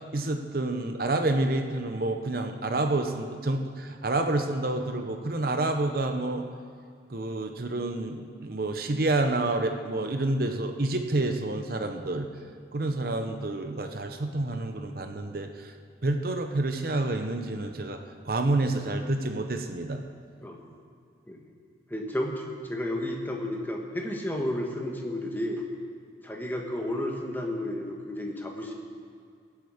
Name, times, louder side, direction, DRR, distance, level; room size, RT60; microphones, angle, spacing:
voice 1, 0.1-6.5 7.1-12.3 12.7-15.7 16.0-20.0, right 2 dB, 50° right, 6 dB, 0.8 m, -28 dB
voice 2, 21.9-25.6 26.2-28.7, left 1 dB, 10° left, 1 dB, 1.4 m, -32 dB
23.5 x 8.1 x 5.0 m, 2.3 s
head